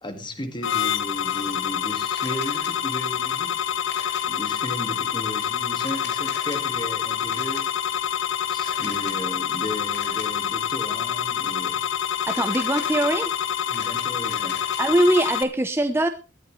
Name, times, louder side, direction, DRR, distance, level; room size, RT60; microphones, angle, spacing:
voice 1, 0.0-3.6 4.3-7.7 8.5-11.9 13.7-14.6, equal, 25° left, 1.7 m, -35 dB
sound 1, 0.6-15.4, left 9 dB, 80° left, 1.0 m, -27 dB
Camera, 2.2-2.7 3.9-4.2 5.7-6.6 7.3-7.6 8.6-9.1 9.9-10.2 12.2-13.1 13.5-14.8, left 5 dB, 60° left, 2.8 m, -40 dB
voice 2, 12.2-13.3 14.8-16.1, right 1 dB, 10° right, 0.6 m, -22 dB
18.5 x 11.0 x 3.1 m
head